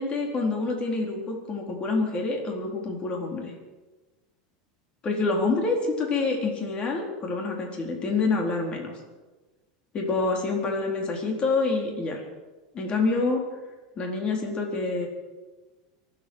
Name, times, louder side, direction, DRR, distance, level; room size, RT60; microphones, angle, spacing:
voice 1, 0.0-3.5 5.0-8.9 9.9-12.2 12.7-13.4 14.0-15.1, left 3 dB, 35° left, 1 dB, 4.0 m, -27 dB
25.5 x 8.7 x 6.4 m, 1.2 s
supercardioid pair, 115°, 3 cm